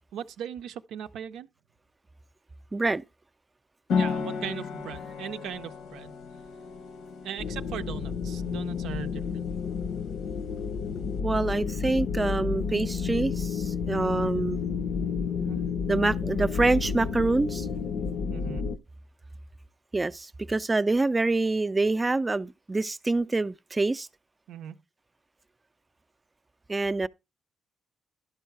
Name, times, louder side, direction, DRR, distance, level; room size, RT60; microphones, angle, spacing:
voice 1, 0.1-1.5 4.0-6.1 7.2-9.5 15.4-15.6 18.3-18.7 24.5-24.8, right 9 dB, 85° right, 0.5 m, -38 dB
voice 2, 2.7-3.0 11.2-14.6 15.9-17.7 19.9-24.1 26.7-27.1, right 3 dB, 20° right, 0.4 m, -26 dB
sound 1, 3.9-11.2, left 5 dB, 85° left, 1.1 m, -35 dB
sound 2, 7.4-18.8, left 6 dB, 70° left, 0.6 m, -31 dB
12.0 x 4.6 x 4.5 m
cardioid pair, 90°, 0 cm